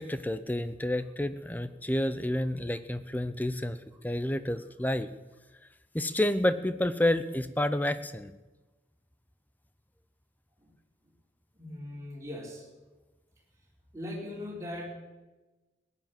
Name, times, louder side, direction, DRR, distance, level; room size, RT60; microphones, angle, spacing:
voice 1, 0.0-3.8 4.0-5.1 5.9-8.3, left 1 dB, 10° left, 12 dB, 0.6 m, -29 dB
voice 2, 11.5-12.7 13.9-14.9, left 1 dB, 15° right, -2 dB, 3.7 m, -39 dB
16.5 x 9.8 x 7.5 m, 1.2 s
head